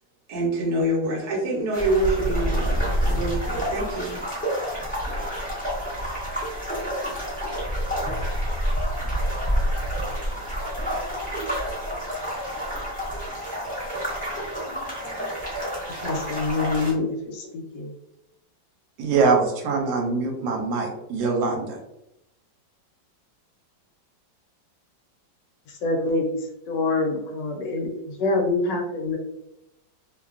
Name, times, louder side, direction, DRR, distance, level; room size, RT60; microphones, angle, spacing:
voice 1, 0.3-4.2, right 1 dB, 65° right, -3 dB, 1.2 m, -26 dB
sound 1, 1.7-16.9, equal, 10° left, 0.5 m, -28 dB
voice 2, 16.0-17.9 25.7-29.2, left 3 dB, 75° left, 1 dB, 1.2 m, -26 dB
voice 3, 19.0-21.8, right 4 dB, 85° right, 2 dB, 1.3 m, -23 dB
3.0 x 2.2 x 2.4 m, 0.85 s
omnidirectional pair, 2.1 m